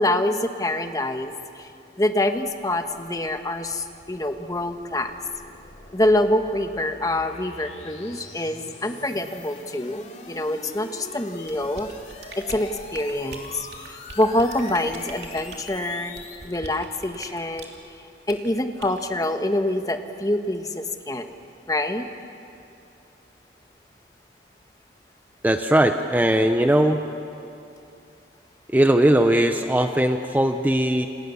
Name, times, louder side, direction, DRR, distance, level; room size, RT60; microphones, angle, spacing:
voice 1, 0.0-1.7 2.0-5.1 5.9-11.9 12.4-17.7 18.3-21.3 21.7-22.1, left 1 dB, 20° left, 7 dB, 1.2 m, -25 dB
sound 1, 2.4-16.5, left 3 dB, 40° left, 2.6 m, -44 dB
sound 2, 11.5-17.8 18.3-18.5 18.8-19.0, right 3 dB, 70° right, 2.8 m, -42 dB
voice 2, 25.4-27.0 28.7-31.1, right 1 dB, 10° right, 6 dB, 0.7 m, -19 dB
29.0 x 27.5 x 7.1 m, 2.7 s
head